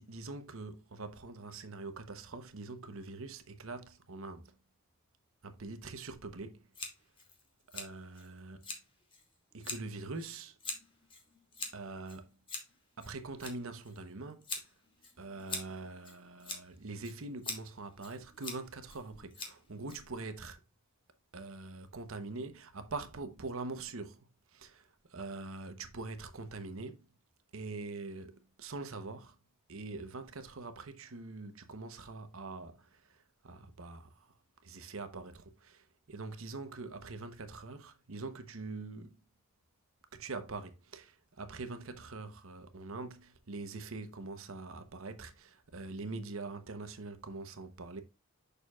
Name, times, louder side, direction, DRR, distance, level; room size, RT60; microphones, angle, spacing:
voice 1, 0.0-4.5 5.4-6.6 7.7-8.6 9.5-10.6 11.7-12.3 13.0-14.4 15.2-20.6 21.3-24.2 24.5-27.0 27.5-29.4 29.7-33.2 33.4-34.1 34.6-39.2 40.1-48.0, right 3 dB, 65° right, 1.0 m, -44 dB
Scissors, 6.7-20.4, left 3 dB, 25° left, 1.6 m, -46 dB
6.8 x 6.6 x 2.4 m
head